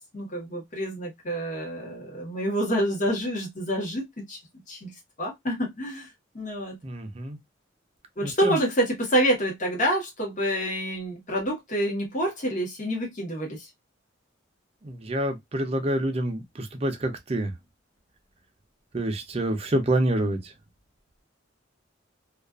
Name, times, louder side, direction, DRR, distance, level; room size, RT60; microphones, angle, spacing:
voice 1, 0.1-4.4 4.7-4.9 5.2-6.1 6.3-6.8 8.2-13.7, equal, 40° left, 1.0 m, -27 dB
voice 2, 6.8-7.4 8.2-8.6 14.8-17.5 18.9-20.4, right 1 dB, 30° right, 0.5 m, -27 dB
2.4 x 2.3 x 2.2 m
head